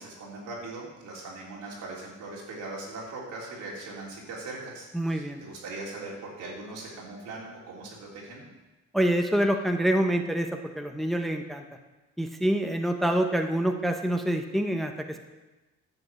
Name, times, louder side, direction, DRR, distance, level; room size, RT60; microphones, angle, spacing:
voice 1, 0.0-8.5, right 2 dB, 85° right, -4 dB, 3.5 m, -40 dB
voice 2, 4.9-5.4 8.9-11.6 12.2-15.2, right 1 dB, ahead, 5 dB, 0.9 m, -26 dB
10.5 x 5.2 x 8.0 m, 1.1 s
cardioid pair, 90°, 30 cm